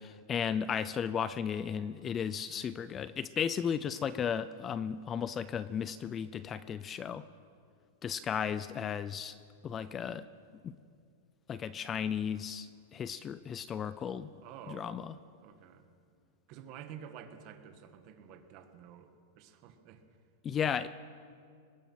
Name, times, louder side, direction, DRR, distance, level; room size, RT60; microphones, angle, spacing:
voice 1, 0.0-7.3 8.0-9.4 9.6-10.3 10.6-10.8 11.5-14.3 14.7-15.1 20.4-20.9, left 7 dB, 20° left, 15 dB, 0.4 m, -35 dB
voice 2, 14.4-15.0 15.4-15.9 16.5-19.1 19.4-20.0, right 8 dB, 40° right, 6 dB, 1.9 m, -50 dB
24.0 x 19.5 x 5.9 m, 2.3 s
supercardioid pair, 160°, 0 cm